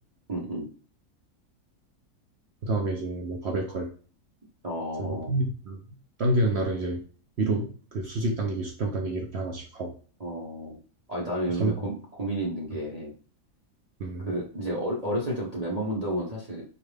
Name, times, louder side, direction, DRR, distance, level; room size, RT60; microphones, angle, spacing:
voice 1, 0.3-0.7 4.6-5.3 10.2-10.7 11.1-13.1 14.2-16.6, right 1 dB, 30° right, -3 dB, 0.7 m, -31 dB
voice 2, 2.6-3.9 5.0-5.8 6.2-7.0 7.4-9.9 11.5-11.7 14.0-14.3, right 2 dB, 65° right, 2 dB, 0.6 m, -28 dB
4.4 x 2.4 x 3.2 m, 0.40 s
omnidirectional pair, 1.7 m